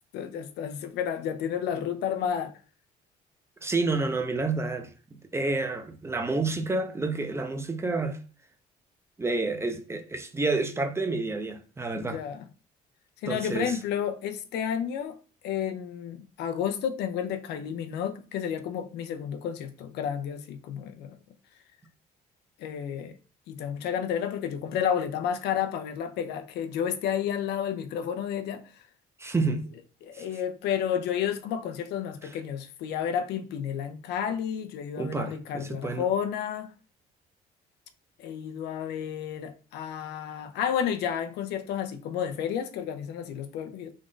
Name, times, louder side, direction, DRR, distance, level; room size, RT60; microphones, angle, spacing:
voice 1, 0.1-2.5 12.0-12.5 13.2-15.2 15.4-21.2 22.6-23.2 23.5-28.8 30.0-36.7 38.2-43.9, left 8 dB, 80° left, 0.6 m, -31 dB
voice 2, 3.6-4.9 5.3-8.2 9.2-12.2 13.3-13.7 29.2-29.6 30.1-30.2 35.0-36.1, right 3 dB, 15° right, 0.6 m, -29 dB
3.6 x 2.5 x 3.7 m
cardioid pair, 110°, 17 cm